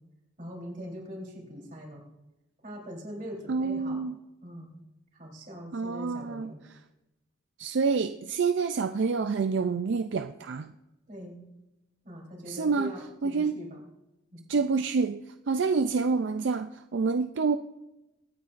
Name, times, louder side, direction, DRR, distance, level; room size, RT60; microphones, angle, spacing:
voice 1, 0.4-2.1 2.6-4.0 4.4-4.7 5.1-6.6 11.1-11.4 12.0-13.8 14.3-14.4, equal, 40° right, -1 dB, 3.6 m, -42 dB
voice 2, 3.5-4.2 5.7-6.5 7.6-10.7 12.5-12.9 13.2-13.6 14.5-17.6, right 4 dB, 70° right, 9 dB, 0.4 m, -27 dB
24.0 x 9.6 x 2.5 m, 0.94 s
head